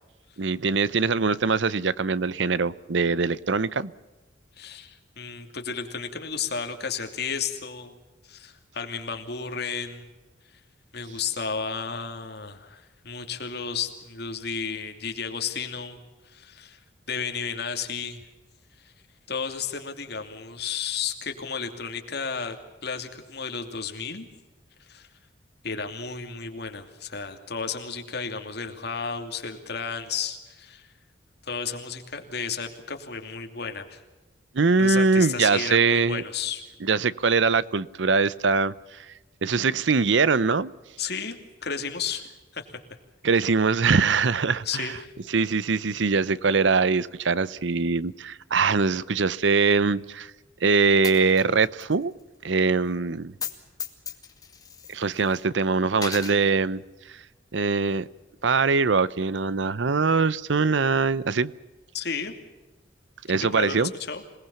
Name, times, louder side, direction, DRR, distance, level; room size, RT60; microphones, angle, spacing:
voice 1, 0.4-3.9 34.5-36.2 36.8-39.1 39.4-40.7 43.2-44.9 45.3-50.3 50.6-52.1 52.4-53.3 54.9-56.8 57.1-57.2 57.5-58.1 58.4-61.5 63.3-63.9, right 4 dB, 70° right, 0.7 m, -22 dB
voice 2, 4.6-7.9 8.3-10.1 10.9-16.0 16.2-16.8 17.1-18.2 18.8-18.9 19.3-24.3 24.8-25.1 25.6-30.9 31.4-34.0 34.8-36.6 41.0-42.3 42.5-42.7 44.6-45.1 61.9-62.3 63.5-64.2, left 6 dB, 55° left, 2.7 m, -33 dB
Coin (dropping), 51.0-51.9 52.2-52.3 53.3-53.5 53.8-55.4 55.9-56.4, left 7 dB, 20° left, 2.3 m, -36 dB
26.5 x 19.0 x 7.1 m
head